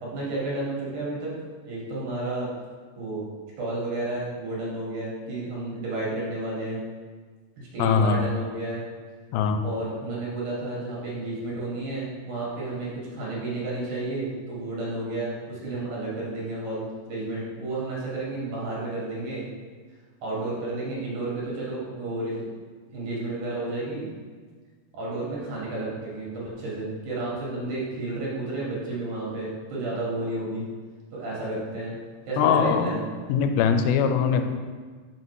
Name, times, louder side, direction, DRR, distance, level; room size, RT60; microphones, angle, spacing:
voice 1, 0.0-1.4 1.6-2.5 3.0-3.2 3.6-6.8 7.6-8.8 9.6-19.4 20.2-22.4 22.9-24.1 24.9-30.6 31.1-31.9 32.3-33.0, right 2 dB, 60° right, -6 dB, 2.9 m, -31 dB
voice 2, 7.8-8.3 9.3-9.6 32.4-32.9 33.3-34.4, left 7 dB, 85° left, 7 dB, 2.5 m, -21 dB
5.8 x 5.4 x 4.6 m, 1.5 s
omnidirectional pair, 4.2 m